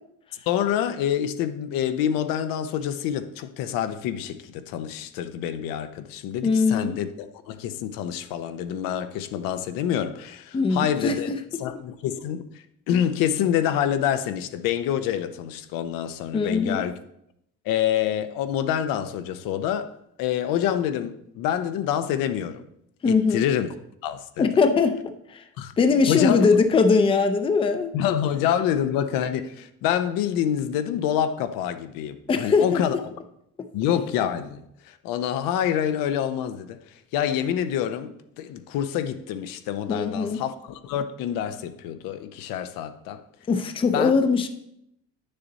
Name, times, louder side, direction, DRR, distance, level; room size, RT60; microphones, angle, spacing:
voice 1, 0.5-11.3 11.6-12.4 12.9-17.0 17.6-19.9 20.2-22.6 23.1-23.7 24.0-24.5 25.6-25.7 26.1-26.5 27.9-33.0 33.7-36.8 37.1-43.2 43.9-44.1, left 10 dB, 85° left, 0.7 m, -27 dB
voice 2, 6.4-7.0 10.5-11.4 16.3-16.8 23.0-23.4 24.4-25.0 25.3-25.4 25.8-27.9 32.3-32.8 39.9-40.4 43.5-44.5, left 4 dB, 15° left, 0.5 m, -21 dB
9.4 x 6.7 x 4.0 m
cardioid pair, 160°, 33 cm